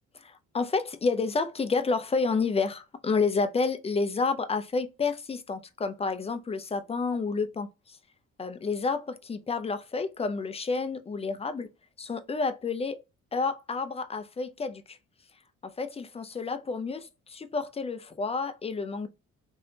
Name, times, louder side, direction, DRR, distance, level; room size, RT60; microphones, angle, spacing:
voice 1, 0.1-8.0 8.4-11.7 12.0-13.0 13.3-15.0 15.8-19.1, left 4 dB, 20° left, 0.4 m, -30 dB
3.1 x 2.7 x 2.7 m
cardioid pair, 90°, 30 cm